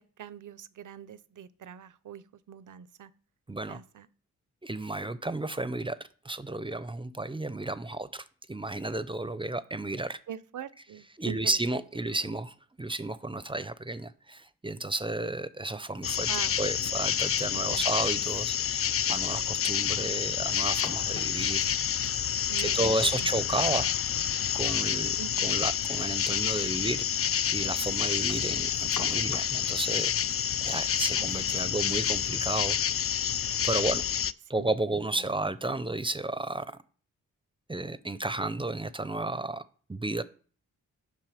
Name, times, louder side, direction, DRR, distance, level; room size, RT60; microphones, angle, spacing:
voice 1, 0.0-2.2 2.5-3.1 3.7-4.1 10.3-11.6 12.2-12.3 16.3-16.6 17.7-18.0 22.5-23.3 25.2-25.6 31.1-31.3 31.6-31.7 34.6-34.7, right 9 dB, 60° right, 17 dB, 0.7 m, -43 dB
voice 2, 3.5-3.8 4.6-6.0 6.2-10.2 11.2-16.3 16.6-21.7 22.6-23.9 24.5-25.2 25.4-30.1 30.6-32.8 33.6-34.0 34.5-36.7 37.7-39.6 39.9-40.2, right 2 dB, 15° right, 15 dB, 0.6 m, -32 dB
sound 1, 16.0-34.3, left 9 dB, 40° left, 0.4 m, -28 dB
sound 2, 20.6-21.7 23.7-25.0 25.4-25.5 25.8-25.9 26.6-26.7 27.9-29.6, left 5 dB, 60° left, 1.5 m, -45 dB
7.6 x 5.7 x 5.0 m, 0.43 s
supercardioid pair, 50°, 35 cm